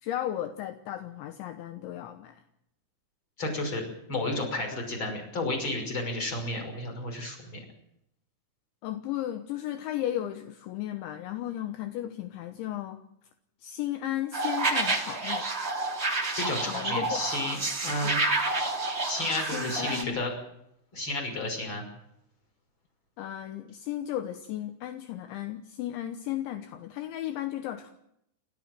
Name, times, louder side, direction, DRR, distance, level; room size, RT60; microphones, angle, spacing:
voice 1, 0.0-2.4 8.8-13.0 13.6-15.5 16.7-17.1 18.0-18.1 19.5-20.2 23.2-27.9, left 12 dB, 75° left, 8 dB, 3.2 m, -35 dB
voice 2, 3.4-7.6 16.4-18.2 19.1-20.3 20.9-21.8, left 2 dB, 25° left, 4 dB, 6.1 m, -32 dB
sound 1, 14.3-20.0, right 3 dB, 15° right, 2.3 m, -29 dB
29.5 x 14.0 x 7.6 m, 0.78 s
omnidirectional pair, 5.7 m